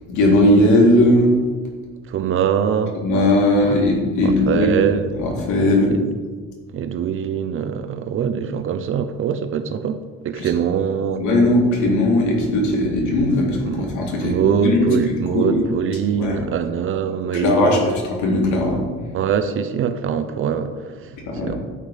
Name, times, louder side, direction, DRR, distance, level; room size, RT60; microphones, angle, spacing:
voice 1, 0.1-1.3 3.0-4.8 5.2-5.9 10.4-10.5 11.2-14.4 14.6-14.9 15.3-15.6 16.2-16.4 17.3-18.8 21.3-21.5, left 1 dB, 70° left, -1 dB, 3.4 m, -18 dB
voice 2, 2.1-2.9 3.6-3.8 4.2-5.1 5.9-6.1 6.7-11.2 13.6-13.9 14.2-17.9 19.1-21.6, right 7 dB, 45° right, 9 dB, 0.8 m, -23 dB
12.0 x 8.6 x 5.2 m, 1.5 s
cardioid pair, 165°, 30 cm